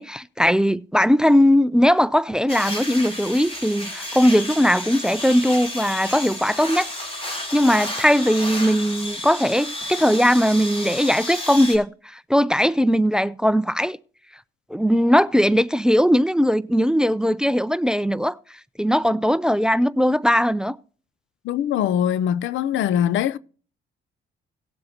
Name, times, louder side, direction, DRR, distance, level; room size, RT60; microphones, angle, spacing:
voice 1, 0.0-6.9 7.3-14.0 14.7-18.4 18.8-20.8, equal, 5° right, 0.4 m, -19 dB
sound 1, 2.5-11.8, left 1 dB, 30° left, 3.7 m, -32 dB
voice 2, 21.4-23.4, left 10 dB, 75° left, 0.5 m, -22 dB
18.5 x 7.8 x 2.8 m
cardioid pair, 90°, 20 cm